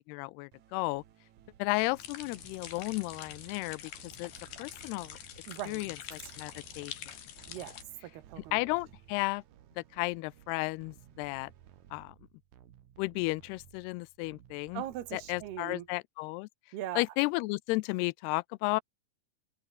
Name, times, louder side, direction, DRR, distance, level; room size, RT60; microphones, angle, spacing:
voice 1, 0.1-1.0 1.6-3.8 4.2-4.3 4.6-5.2 5.7-6.9 8.5-9.4 9.8-11.5 11.9-12.2 13.0-14.8 15.1-16.5 17.0-18.8, left 24 dB, 90° left, 2.6 m, -33 dB
sound 1, 0.5-15.9, right 11 dB, 60° right, 2.4 m, -58 dB
sound 2, 2.0-7.8, left 10 dB, 70° left, 4.1 m, -46 dB
voice 2, 5.5-6.0 6.2-6.4 7.5-8.6 14.7-15.9 16.7-17.0, right 12 dB, 80° right, 3.6 m, -40 dB
omnidirectional pair, 4.6 m